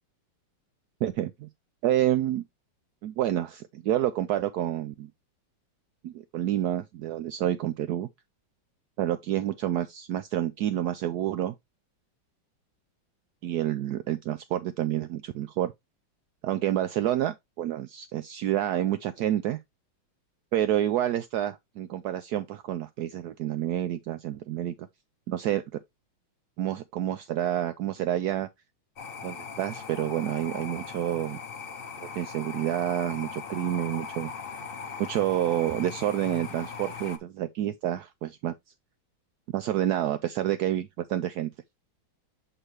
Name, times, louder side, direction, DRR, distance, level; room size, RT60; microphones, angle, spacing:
voice 1, 1.0-1.5 1.8-2.4 3.0-5.1 6.0-8.1 9.0-11.5 13.4-15.7 16.4-19.6 20.5-24.7 25.3-25.6 26.6-28.5 29.2-31.4 32.1-34.3 35.0-38.5 39.5-41.5, right 12 dB, 75° right, 0.9 m, -28 dB
sound 1, 29.0-37.2, left 5 dB, 50° left, 0.6 m, -39 dB
8.0 x 3.9 x 3.1 m
omnidirectional pair, 2.2 m